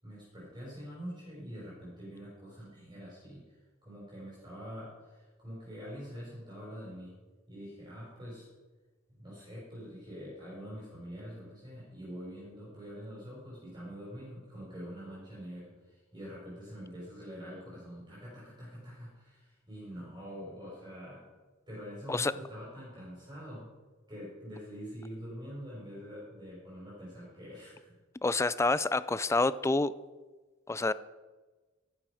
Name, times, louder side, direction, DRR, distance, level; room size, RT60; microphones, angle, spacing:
voice 1, 0.0-7.1 7.5-8.5 9.2-21.3 21.7-23.7 24.1-27.9, equal, 20° right, -7 dB, 5.1 m, -45 dB
voice 2, 28.2-29.9 30.7-30.9, left 3 dB, 15° left, 17 dB, 0.4 m, -28 dB
13.5 x 11.0 x 5.0 m, 1.3 s
head